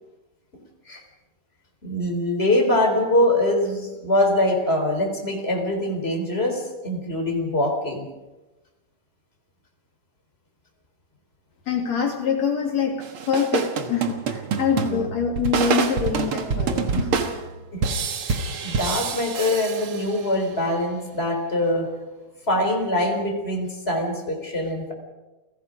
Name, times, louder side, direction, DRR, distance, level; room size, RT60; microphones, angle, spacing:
voice 1, 1.8-8.1 14.9-15.0 17.7-17.8 18.3-21.9 22.5-24.9, left 1 dB, 20° left, 2 dB, 4.2 m, -23 dB
voice 2, 11.7-17.3, left 6 dB, 55° left, 2 dB, 4.0 m, -25 dB
sound 1, 13.0-20.4, right 5 dB, 55° right, 1.9 m, -27 dB
30.0 x 17.5 x 5.1 m, 1.1 s
omnidirectional pair, 3.7 m